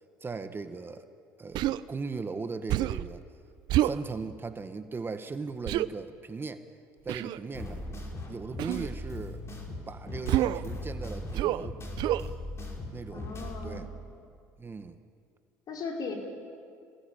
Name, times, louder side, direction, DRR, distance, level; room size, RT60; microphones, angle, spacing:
voice 1, 0.2-1.1 1.4-3.2 3.8-6.6 7.0-7.8 8.3-9.4 9.9-11.8 12.9-13.3 13.6-13.9 14.6-15.0, right 4 dB, 25° right, 9 dB, 1.5 m, -38 dB
Human voice, 1.5-1.8 2.7-3.1 3.7-4.0 5.7-5.9 7.1-7.4 8.6-8.9 10.3-10.7 11.3-11.7 12.0-12.3, right 14 dB, 65° right, 0.7 m, -27 dB
sound 1, 7.5-13.8, left 1 dB, 35° left, 5.4 m, -39 dB
voice 2, 13.1-13.9 15.7-16.1, left 4 dB, 55° left, 1 dB, 5.6 m, -37 dB
27.0 x 18.0 x 9.0 m, 2.3 s
hypercardioid pair, 70°, 8 cm